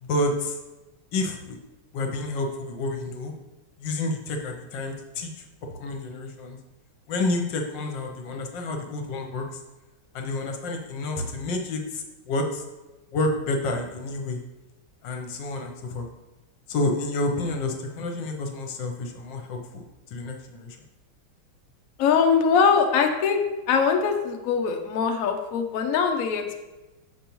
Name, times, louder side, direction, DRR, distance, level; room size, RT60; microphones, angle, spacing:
voice 1, 0.0-0.6 1.1-1.6 1.9-3.3 3.8-5.3 5.6-6.6 7.1-9.6 10.1-12.6 13.1-14.4 15.0-16.1 16.7-20.8, left 2 dB, 70° left, 4 dB, 1.4 m, -29 dB
voice 2, 22.0-23.4 23.7-26.6, left 6 dB, 85° left, 4 dB, 0.7 m, -22 dB
6.8 x 5.3 x 3.0 m, 1.1 s
omnidirectional pair, 2.3 m